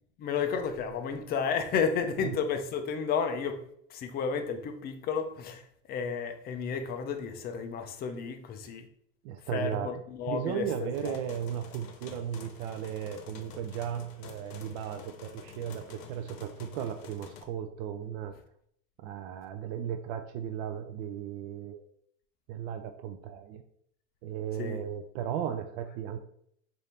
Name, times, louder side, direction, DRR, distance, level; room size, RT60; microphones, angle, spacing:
voice 1, 0.2-8.9 9.5-11.2 24.6-24.8, left 6 dB, 25° left, 0.4 m, -32 dB
voice 2, 9.2-9.9 10.3-18.3 19.0-21.9 22.5-23.6 24.2-26.2, right 9 dB, 55° right, 0.4 m, -36 dB
sound 1, 10.9-17.4, left 5 dB, 75° left, 0.8 m, -49 dB
3.2 x 2.7 x 4.1 m
hypercardioid pair, 115°, 40 cm